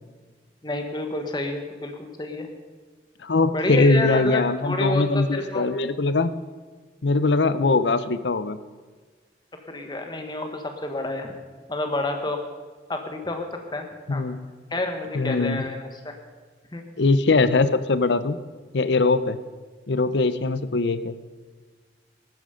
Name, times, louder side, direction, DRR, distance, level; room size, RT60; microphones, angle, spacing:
voice 1, 0.6-2.5 3.5-5.7 9.7-11.3 11.7-12.4 12.9-14.2 14.7-16.1 16.7-16.9, left 2 dB, 25° left, 5 dB, 1.3 m, -29 dB
voice 2, 3.2-6.3 7.0-8.6 14.1-14.4 15.1-15.6 17.0-18.4 18.7-19.4 19.9-21.2, left 3 dB, 75° left, 14 dB, 0.7 m, -21 dB
14.5 x 12.5 x 5.1 m, 1.5 s
head